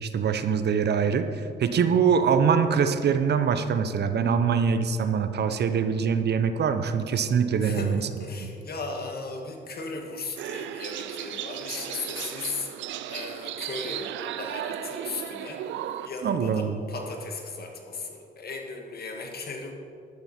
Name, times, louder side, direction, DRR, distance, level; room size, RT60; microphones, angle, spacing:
voice 1, 0.0-8.0 16.2-16.8, right 6 dB, 60° right, 10 dB, 0.9 m, -24 dB
voice 2, 7.6-12.7 13.1-15.8 16.0-19.7, left 3 dB, 55° left, 2 dB, 2.1 m, -36 dB
sound 1, 10.4-16.1, right 11 dB, 85° right, 0.5 m, -35 dB
12.0 x 12.0 x 4.4 m, 2.6 s
cardioid pair, 70°, 19 cm